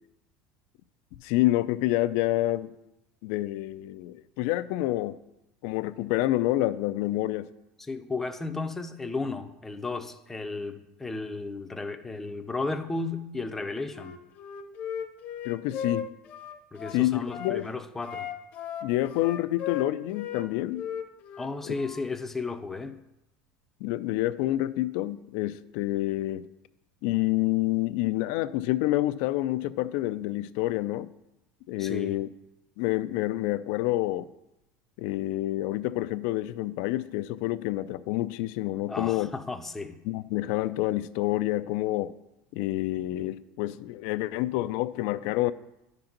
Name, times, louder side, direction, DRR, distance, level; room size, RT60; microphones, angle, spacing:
voice 1, 1.2-2.7 3.2-5.2 5.6-7.5 15.4-16.1 16.9-17.7 18.8-20.8 21.6-21.7 23.8-26.4 27.0-31.1 31.7-32.3 32.8-34.3 35.0-39.3 40.0-42.1 42.5-45.5, left 16 dB, 65° left, 14 dB, 0.4 m, -28 dB
voice 2, 7.8-14.2 16.7-18.3 21.4-23.0 31.8-32.2 38.9-40.0, left 3 dB, 10° left, 6 dB, 0.5 m, -34 dB
Wind instrument woodwind instrument, 13.9-17.6 18.0-20.5 20.7-22.1, left 8 dB, 45° left, 0.7 m, -36 dB
10.0 x 3.9 x 5.9 m, 0.89 s
cardioid pair, 150°, 4 cm